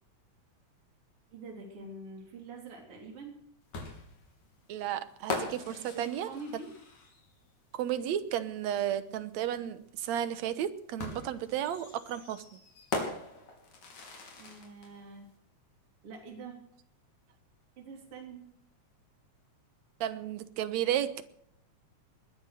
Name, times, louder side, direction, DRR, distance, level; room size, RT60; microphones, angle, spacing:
voice 1, 1.3-3.4 5.6-6.7 14.4-15.3 16.0-16.6 17.8-18.4, right 3 dB, 50° right, 1 dB, 4.3 m, -45 dB
sound 1, 3.7-7.4 8.9-9.0 11.0-14.9, left 3 dB, 80° left, 4.5 m, -40 dB
voice 2, 4.7-6.3 7.7-12.4 20.0-21.2, right 10 dB, 70° right, 12 dB, 2.2 m, -33 dB
20.5 x 10.5 x 6.6 m, 0.72 s
omnidirectional pair, 3.3 m